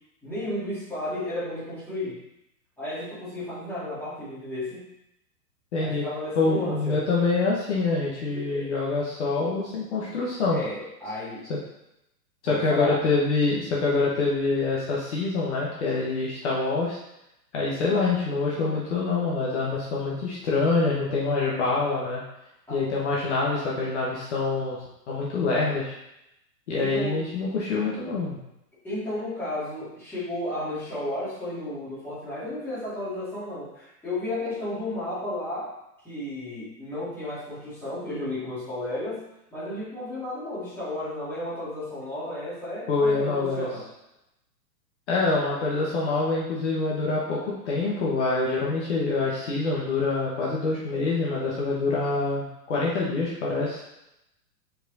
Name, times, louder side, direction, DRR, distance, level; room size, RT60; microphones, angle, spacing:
voice 1, 0.2-2.2 2.8-4.8 5.8-7.0 8.3-8.7 10.5-11.5 12.4-13.0 22.7-22.8 26.7-27.2 28.8-35.7 36.0-39.2 39.5-43.8, left 1 dB, 5° left, -12 dB, 2.2 m, -33 dB
voice 2, 5.7-6.0 6.3-10.6 11.5-11.6 12.4-17.0 17.5-22.2 22.7-24.8 25.1-25.9 26.7-28.4 42.9-43.7 45.1-53.8, left 3 dB, 45° left, -5 dB, 1.3 m, -25 dB
5.3 x 4.8 x 3.9 m, 0.86 s
hypercardioid pair, 165°, 50 cm